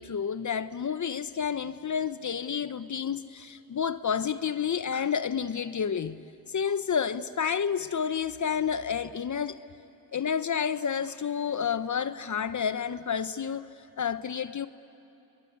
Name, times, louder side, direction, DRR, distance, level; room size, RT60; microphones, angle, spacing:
voice 1, 0.0-9.6 10.1-13.7 14.0-14.7, left 7 dB, 35° left, 0.8 m, -30 dB
28.0 x 21.0 x 9.7 m
supercardioid pair, 60°, 49 cm